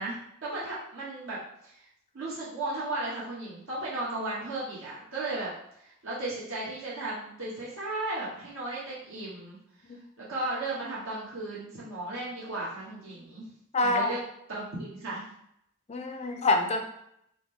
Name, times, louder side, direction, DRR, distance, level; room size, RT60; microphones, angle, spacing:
voice 1, 0.0-1.9 2.1-5.5 5.8-9.6 10.2-13.5 13.8-14.2 14.5-15.3, right 2 dB, 60° right, -8 dB, 1.0 m, -35 dB
voice 2, 13.7-14.1 15.9-16.8, left 2 dB, 30° left, 5 dB, 0.3 m, -26 dB
4.8 x 2.1 x 3.5 m, 0.76 s
head